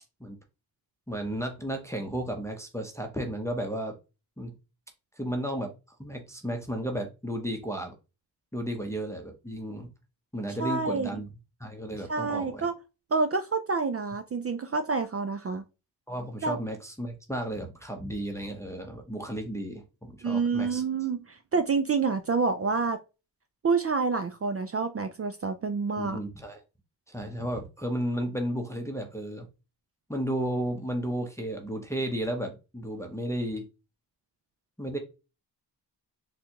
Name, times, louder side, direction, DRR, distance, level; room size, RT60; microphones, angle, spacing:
voice 1, 1.1-4.0 4.4-4.6 5.2-5.7 6.0-8.0 8.5-9.9 10.3-11.3 11.6-12.7 16.1-20.8 26.0-26.6 27.1-29.5 30.1-33.7 34.8-35.0, right 1 dB, 5° left, 0.7 m, -33 dB
voice 2, 10.6-11.2 12.1-12.7 13.1-15.6 16.4-16.6 20.2-23.0 23.6-26.2, right 4 dB, 35° right, 0.4 m, -28 dB
4.1 x 2.3 x 2.9 m
cardioid pair, 65°, 45 cm